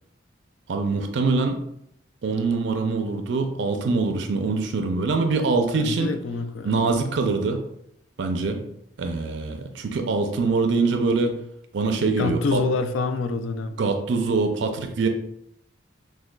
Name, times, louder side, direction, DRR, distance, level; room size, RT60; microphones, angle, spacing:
voice 1, 0.7-1.6 2.2-6.1 6.6-7.6 8.2-8.6 9.0-11.3 11.7-12.6 13.8-15.1, right 3 dB, 65° right, 4 dB, 0.4 m, -24 dB
voice 2, 5.7-6.8 12.2-13.8, left 4 dB, 85° left, 8 dB, 0.4 m, -27 dB
6.1 x 2.2 x 2.2 m, 0.76 s
head